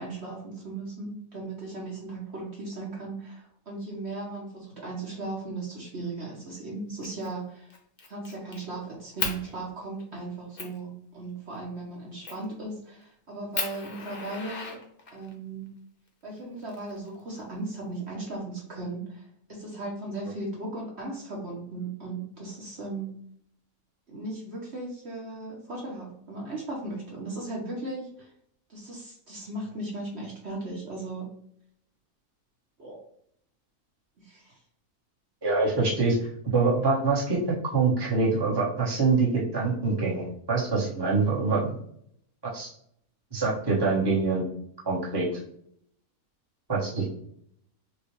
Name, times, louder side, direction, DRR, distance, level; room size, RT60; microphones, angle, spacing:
voice 1, 0.0-7.7 8.1-14.8 15.1-15.7 16.2-23.2 24.1-28.3 28.7-31.3 32.8-33.0 34.2-34.6, right 2 dB, 50° right, -3 dB, 1.2 m, -37 dB
Fire, 7.0-7.3 7.7-8.6 9.2-9.4 10.0-10.1 10.6-10.8 12.2-12.5 13.0-13.1 13.5-15.3 16.4-17.3, left 4 dB, 45° left, 0.9 m, -35 dB
voice 2, 35.4-36.1 36.5-37.4 37.6-41.7 42.5-42.7 43.3-44.4 44.8-45.3 46.7-47.0, right 4 dB, 20° right, -5 dB, 1.1 m, -25 dB
6.1 x 2.4 x 3.1 m, 0.69 s
omnidirectional pair, 1.5 m